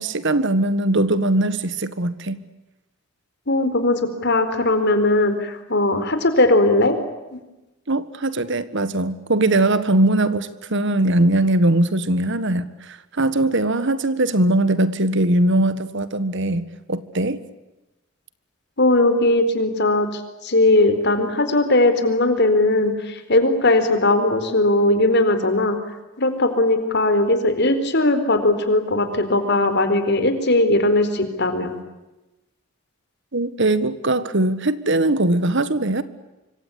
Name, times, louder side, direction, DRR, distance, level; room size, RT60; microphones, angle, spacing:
voice 1, 0.0-2.4 7.9-17.4 33.3-36.0, right 1 dB, 60° right, 1.7 m, -20 dB
voice 2, 3.5-7.0 18.8-25.8 26.2-31.8, left 2 dB, 55° left, 4.3 m, -19 dB
26.0 x 25.5 x 8.5 m
head